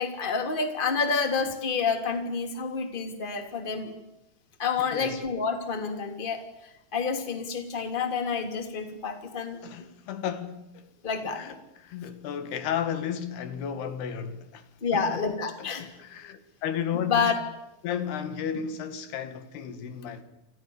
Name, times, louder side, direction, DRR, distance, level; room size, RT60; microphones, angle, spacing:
voice 1, 0.0-3.9 4.6-6.4 6.9-9.6 11.0-11.4 14.8-15.8 17.1-17.3, left 5 dB, 15° left, 2.4 m, -28 dB
voice 2, 4.8-5.2 9.6-10.9 11.3-15.3 15.6-17.4 17.8-20.2, left 8 dB, 80° left, 3.9 m, -34 dB
29.0 x 27.5 x 7.1 m
omnidirectional pair, 4.6 m